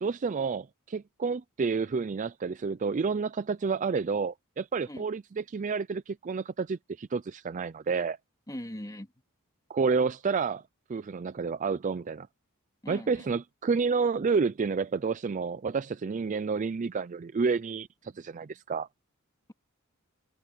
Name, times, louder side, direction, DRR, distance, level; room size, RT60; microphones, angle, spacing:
voice 1, 0.0-8.2 9.7-10.6 10.9-12.3 12.9-18.9, right 5 dB, 35° right, 0.4 m, -30 dB
voice 2, 8.5-9.1 12.8-13.3, equal, 15° left, 2.9 m, -40 dB
head